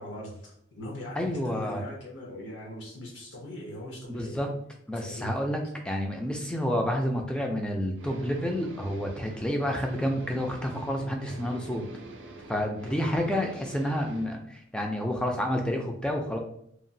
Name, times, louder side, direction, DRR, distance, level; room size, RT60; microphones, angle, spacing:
voice 1, 0.0-4.4 4.9-5.4 12.8-13.1, left 1 dB, 70° left, -2 dB, 0.6 m, -40 dB
voice 2, 1.2-1.8 4.1-4.5 4.9-5.6 5.8-11.8 12.5-16.4, equal, 5° left, 2 dB, 0.3 m, -29 dB
sound 1, 7.9-14.3, right 2 dB, 70° right, 0.4 m, -44 dB
2.9 x 2.3 x 2.6 m, 0.69 s
head